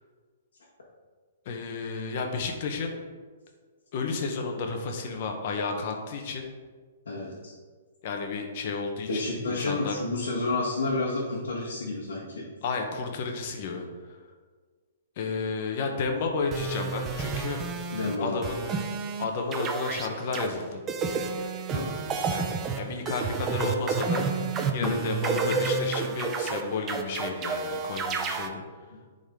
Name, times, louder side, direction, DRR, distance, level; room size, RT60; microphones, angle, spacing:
voice 1, 1.4-3.0 3.9-6.4 8.0-9.9 12.6-13.9 15.2-17.6 18.2-18.6 19.2-20.8 22.3-24.2 24.7-28.6, left 4 dB, 50° left, 3 dB, 1.2 m, -32 dB
voice 2, 7.0-7.5 9.1-12.5 17.9-18.4 21.7-21.9 24.8-25.0, left 2 dB, 90° left, -7 dB, 1.6 m, -30 dB
sound 1, 16.5-18.2 18.4-19.3 19.5-20.5 20.9-28.5, right 5 dB, 20° right, 0.7 m, -30 dB
10.0 x 4.1 x 3.8 m, 1.5 s
hypercardioid pair, 140°, 0 cm